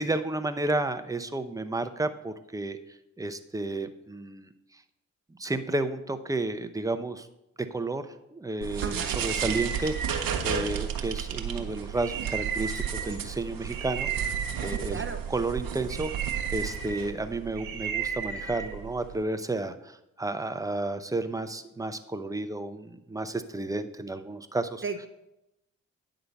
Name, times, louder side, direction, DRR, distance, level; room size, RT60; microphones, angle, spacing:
voice 1, 0.0-2.8 3.2-4.5 5.4-7.3 7.7-8.0 8.3-14.3 14.6-15.0 15.3-16.1 16.5-24.8, right 2 dB, 10° right, 9 dB, 0.7 m, -32 dB
sound 1, 8.6-19.2, right 8 dB, 75° right, 1.0 m, -32 dB
voice 2, 8.8-9.2 14.6-15.2 24.8-25.1, right 5 dB, 35° right, 7 dB, 0.9 m, -35 dB
9.5 x 3.9 x 7.0 m, 0.88 s
cardioid pair, 60°, 35 cm